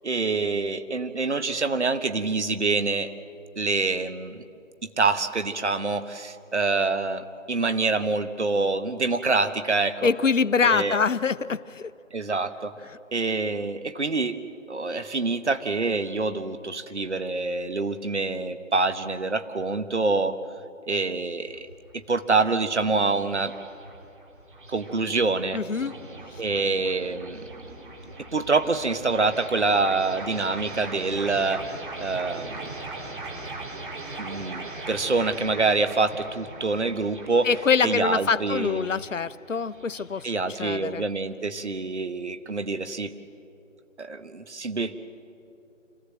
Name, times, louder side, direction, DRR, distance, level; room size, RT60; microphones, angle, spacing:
voice 1, 0.0-3.1 3.6-4.4 4.8-10.1 10.6-11.0 12.1-12.7 13.1-14.4 14.7-20.4 20.9-21.7 21.9-23.5 24.7-25.6 26.4-27.4 28.3-31.7 32.0-32.6 34.2-37.5 37.8-39.0 40.2-43.1 44.0-45.0, right 3 dB, 60° right, 10 dB, 1.2 m, -26 dB
voice 2, 10.0-11.9 25.5-25.9 37.4-41.0, left 5 dB, 70° left, 16 dB, 0.7 m, -25 dB
sound 1, 21.3-40.2, right 2 dB, 40° right, 2.6 m, -40 dB
26.0 x 16.0 x 7.7 m, 2.6 s
figure-of-eight pair, 155°, 39 cm